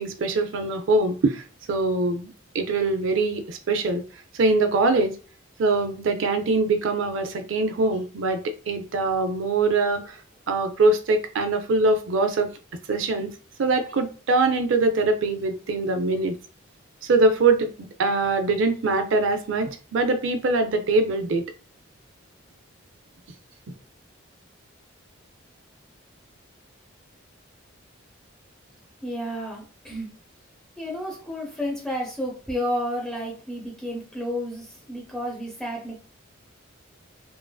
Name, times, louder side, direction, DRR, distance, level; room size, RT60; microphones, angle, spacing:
voice 1, 0.0-1.4 1.7-4.0 4.3-5.2 5.6-10.2 10.5-12.5 12.9-13.3 13.6-16.4 17.0-17.7 18.0-21.5, right 3 dB, 65° right, 0.4 m, -23 dB
voice 2, 29.0-30.1 30.8-36.0, equal, 5° left, 0.8 m, -31 dB
3.0 x 2.4 x 2.3 m
head